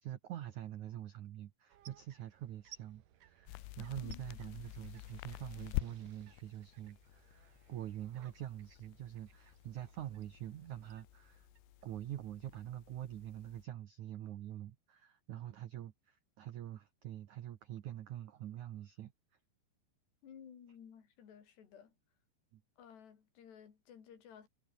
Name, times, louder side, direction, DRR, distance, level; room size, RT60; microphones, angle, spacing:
voice 1, 0.0-11.5 11.8-19.1 22.5-22.6, right 12 dB, 80° right, 1.7 m, -45 dB
sound 1, 1.7-12.5, right 11 dB, 60° right, 2.5 m, -63 dB
sound 2, 3.5-13.6, left 24 dB, 85° left, 2.4 m, -48 dB
voice 2, 20.2-22.0 22.8-24.5, left 8 dB, 65° left, 5.6 m, -55 dB
omnidirectional pair, 5.3 m